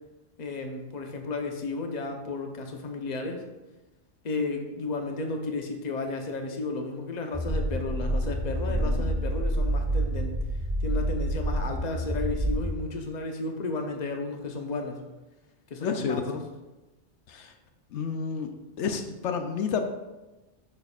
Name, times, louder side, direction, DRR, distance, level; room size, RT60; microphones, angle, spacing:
voice 1, 0.4-3.4 4.2-10.4 10.8-15.1 15.7-16.3, left 3 dB, 40° left, 3 dB, 0.9 m, -33 dB
sound 1, 7.3-12.7, right 1 dB, 15° right, 1.4 m, -28 dB
voice 2, 8.6-9.1 15.8-16.5 17.3-17.5 17.9-18.5 18.8-19.8, left 6 dB, 80° left, 6 dB, 0.9 m, -30 dB
9.4 x 6.6 x 2.4 m, 1.1 s
omnidirectional pair, 1.2 m